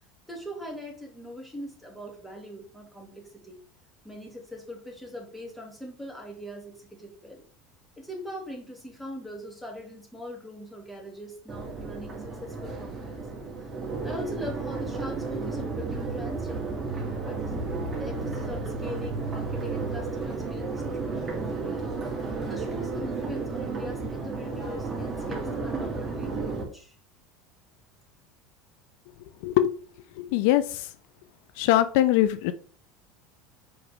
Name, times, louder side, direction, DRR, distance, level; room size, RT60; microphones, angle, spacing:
voice 1, 0.3-3.6 4.0-7.4 8.0-13.2 13.6-13.7 14.0-17.4 18.0-22.0 22.5-27.0, equal, 5° left, 0 dB, 2.3 m, -41 dB
Crowd, 11.5-26.6, right 3 dB, 20° right, 2.1 m, -33 dB
sound 1, 15.6-24.4, right 5 dB, 70° right, 1.3 m, -41 dB
voice 2, 29.4-29.7 30.2-30.9 31.6-32.5, left 13 dB, 75° left, 13 dB, 0.5 m, -22 dB
7.1 x 4.9 x 3.4 m, 0.43 s
supercardioid pair, 115°, 0 cm